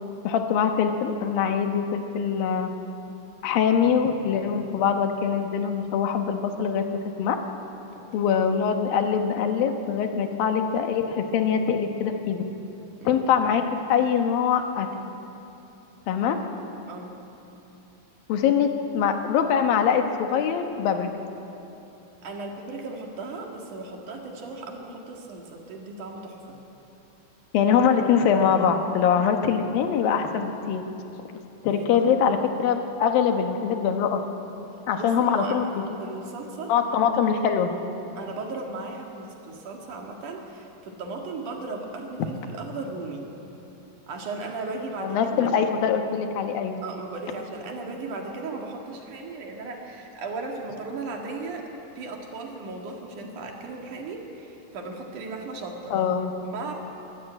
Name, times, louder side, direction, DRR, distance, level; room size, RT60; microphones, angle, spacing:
voice 1, 0.2-2.7 3.4-6.8 7.2-7.4 8.1-12.4 13.0-13.6 13.9-14.9 16.1-16.4 18.3-18.7 18.9-21.1 27.5-30.8 31.6-34.2 34.9-35.9 36.7-37.7 45.0-46.8 55.9-56.3, left 7 dB, 90° left, 5 dB, 3.0 m, -23 dB
voice 2, 7.9-8.3 13.0-13.2 16.9-17.2 22.2-26.6 31.0-31.1 31.7-32.1 35.0-35.7 36.0-36.9 37.2-37.3 38.2-43.3 44.1-45.5 46.8-51.7 52.0-56.0 56.5-56.8, right 3 dB, 65° right, 1 dB, 3.4 m, -36 dB
23.5 x 13.5 x 8.9 m, 3.0 s
omnidirectional pair, 4.0 m